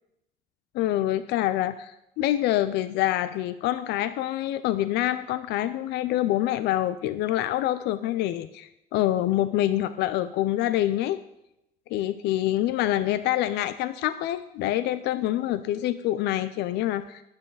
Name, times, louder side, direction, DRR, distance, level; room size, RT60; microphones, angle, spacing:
voice 1, 0.7-11.2 11.9-17.2, left 13 dB, 85° left, 13 dB, 0.6 m, -26 dB
13.5 x 9.7 x 4.0 m, 0.84 s
cardioid pair, 110°, 17 cm